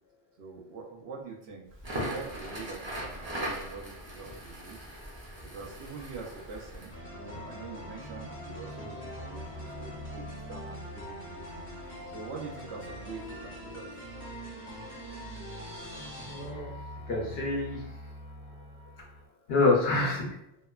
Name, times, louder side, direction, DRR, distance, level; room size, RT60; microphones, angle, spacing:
voice 1, 0.4-4.9 5.4-11.6 12.1-13.9, right 4 dB, 90° right, -1 dB, 0.9 m, -44 dB
Crackle, 1.7-7.0, equal, 30° right, 0.6 m, -39 dB
sound 1, 6.9-19.3, equal, 50° left, 0.9 m, -42 dB
voice 2, 16.3-16.7 17.1-17.9 19.5-20.3, left 3 dB, 70° left, -2 dB, 0.9 m, -27 dB
2.8 x 2.2 x 2.2 m, 0.76 s
omnidirectional pair, 1.1 m